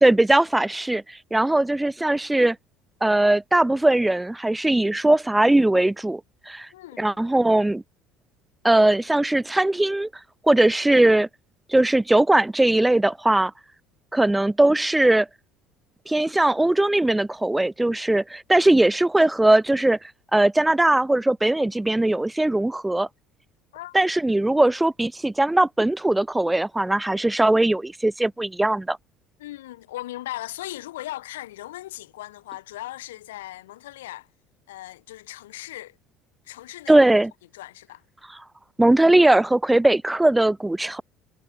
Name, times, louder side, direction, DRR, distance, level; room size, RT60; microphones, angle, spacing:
voice 1, 0.0-2.6 3.0-6.2 6.5-6.7 7.0-7.8 8.6-10.1 10.4-11.3 11.7-13.5 14.1-15.3 16.1-20.0 20.3-23.1 23.9-29.0 36.9-37.3 38.8-41.0, right 1 dB, 10° right, 1.4 m, -20 dB
voice 2, 6.7-7.2 23.7-24.0 29.4-34.3 34.7-36.0 36.4-37.0 37.5-38.0, left 15 dB, 75° left, 3.6 m, -38 dB
figure-of-eight pair, 60°, 0 cm